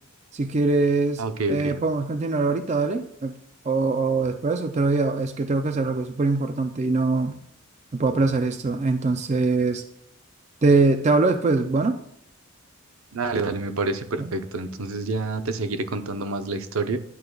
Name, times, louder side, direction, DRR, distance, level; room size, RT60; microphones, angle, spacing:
voice 1, 0.3-1.2 1.5-3.3 3.6-7.4 7.9-9.8 10.6-12.0 14.2-14.3, right 3 dB, 30° right, 7 dB, 0.4 m, -22 dB
voice 2, 1.2-1.7 13.1-17.0, right 3 dB, 70° right, 9 dB, 0.7 m, -28 dB
11.0 x 6.4 x 2.3 m, 0.71 s
head